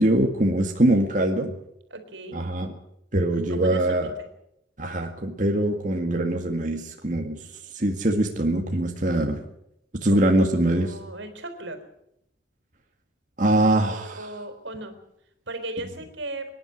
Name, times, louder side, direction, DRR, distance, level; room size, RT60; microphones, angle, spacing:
voice 1, 0.0-1.5 2.3-2.7 3.1-4.1 4.8-7.4 7.7-9.4 10.0-10.9 13.4-14.3, right 1 dB, 40° right, 2 dB, 1.9 m, -23 dB
voice 2, 1.9-2.4 3.3-4.3 10.1-11.8 13.8-15.0 15.5-16.5, right 2 dB, 80° right, 8 dB, 3.8 m, -37 dB
25.5 x 11.0 x 9.9 m, 0.79 s
head